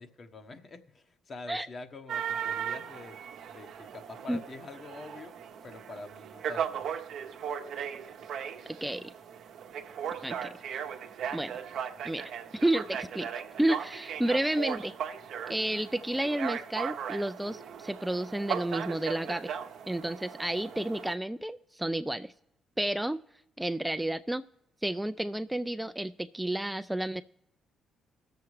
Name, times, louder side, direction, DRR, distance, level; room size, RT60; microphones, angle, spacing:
voice 1, 0.0-3.2 3.5-6.9, left 3 dB, 45° left, 6 dB, 1.2 m, -46 dB
sound 1, 2.1-21.1, right 8 dB, 70° right, 0.8 m, -38 dB
voice 2, 8.8-9.1 10.2-10.5 11.3-11.5 12.0-13.3 13.6-15.0 15.5-19.5 19.9-22.3 22.8-23.2 23.6-24.4 24.8-27.2, right 1 dB, 10° right, 11 dB, 0.4 m, -31 dB
19.5 x 7.0 x 3.2 m, 0.83 s
supercardioid pair, 55°, 0 cm